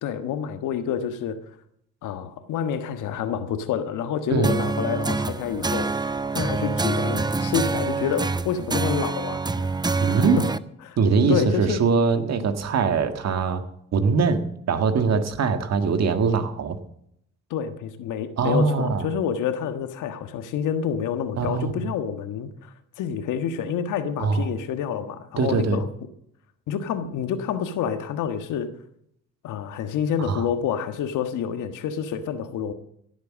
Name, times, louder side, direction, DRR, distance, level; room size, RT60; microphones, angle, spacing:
voice 1, 0.0-1.4 2.0-9.7 10.1-10.5 10.8-11.0 11.3-11.8 17.5-25.9 26.7-28.7 29.4-32.7, left 8 dB, 85° left, 1.5 m, -28 dB
sound 1, 4.4-10.6, right 3 dB, 15° right, 0.6 m, -26 dB
voice 2, 10.0-10.4 11.0-13.6 13.9-16.8 18.4-19.1 21.4-21.7 24.2-24.5 25.4-25.8 30.3-30.4, right 5 dB, 60° right, 1.7 m, -22 dB
16.5 x 8.1 x 7.4 m
cardioid pair, 90°, 30 cm